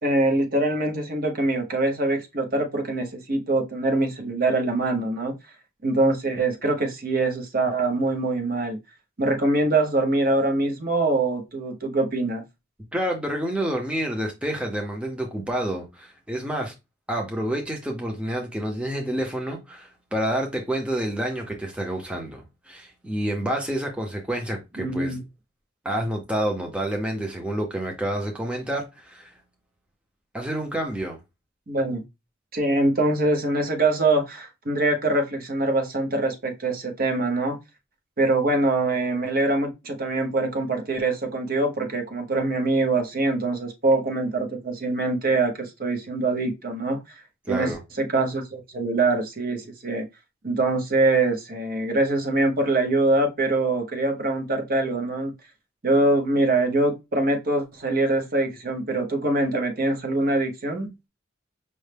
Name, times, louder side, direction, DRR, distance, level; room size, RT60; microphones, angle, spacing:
voice 1, 0.0-5.3 5.8-8.8 9.2-12.4 24.8-25.2 31.7-32.0 32.5-37.6 38.2-47.0 47.5-50.0 50.4-55.3 55.8-60.9, right 2 dB, 50° right, 0.9 m, -24 dB
voice 2, 12.9-16.7 17.1-25.2 25.8-29.4 30.3-31.2 47.5-47.8, right 1 dB, 5° right, 0.6 m, -28 dB
5.4 x 2.1 x 3.3 m
head